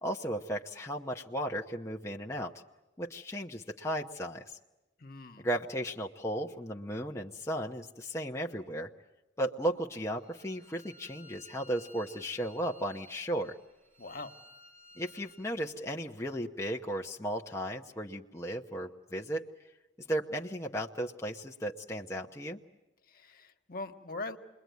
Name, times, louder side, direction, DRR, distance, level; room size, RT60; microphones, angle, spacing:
voice 1, 0.0-2.5 3.0-4.6 5.4-8.9 9.4-13.6 15.0-19.4 20.1-22.6, right 1 dB, 15° left, 0 dB, 0.9 m, -35 dB
voice 2, 5.0-5.5 14.0-14.3 23.1-24.4, left 2 dB, 50° left, 6 dB, 1.5 m, -42 dB
Bowed string instrument, 10.1-15.5, left 1 dB, 40° right, 6.6 m, -57 dB
28.5 x 22.0 x 9.4 m, 1.0 s
head